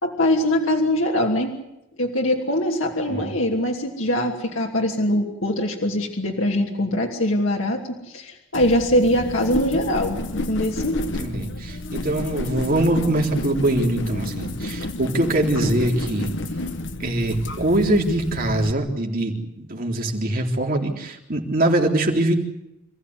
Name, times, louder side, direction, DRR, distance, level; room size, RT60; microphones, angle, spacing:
voice 1, 0.0-1.5 2.0-11.0, left 1 dB, 90° left, -1 dB, 3.0 m, -22 dB
sound 1, 8.5-18.7, left 2 dB, 65° left, 1.4 m, -30 dB
voice 2, 11.2-16.3 17.0-22.3, right 1 dB, 45° right, 1 dB, 3.8 m, -23 dB
26.5 x 15.5 x 9.7 m, 0.88 s
head